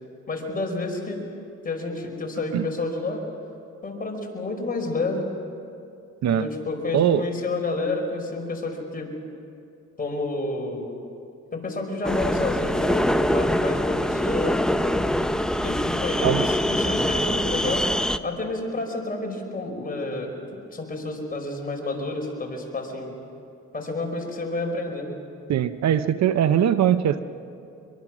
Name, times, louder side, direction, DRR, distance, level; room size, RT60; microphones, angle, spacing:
voice 1, 0.3-1.2 1.6-3.2 3.8-5.3 6.3-9.1 10.0-10.9 11.5-14.6 15.6-17.9 18.2-20.3 20.7-23.1 23.7-25.1, left 2 dB, 30° left, 1 dB, 5.1 m, -29 dB
voice 2, 6.9-7.2 16.2-16.5 25.5-27.2, right 10 dB, 65° right, 12 dB, 0.8 m, -21 dB
sound 1, 12.0-18.2, equal, ahead, 0.7 m, -24 dB
24.0 x 22.5 x 6.2 m, 2.6 s
cardioid pair, 90°, 30 cm